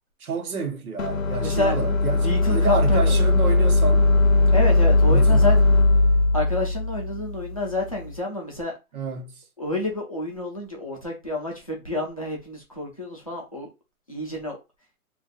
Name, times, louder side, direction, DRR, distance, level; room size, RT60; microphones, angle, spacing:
voice 1, 0.2-4.1 5.1-5.5 8.9-9.4, right 5 dB, 80° right, 1.1 m, -30 dB
sound 1, 1.0-8.1, left 2 dB, 65° left, 0.7 m, -19 dB
voice 2, 1.4-1.8 2.2-3.2 4.5-5.5 6.3-8.7 9.6-13.7 14.1-14.6, left 2 dB, 25° left, 0.5 m, -28 dB
2.5 x 2.5 x 3.9 m
hypercardioid pair, 180°, 43 cm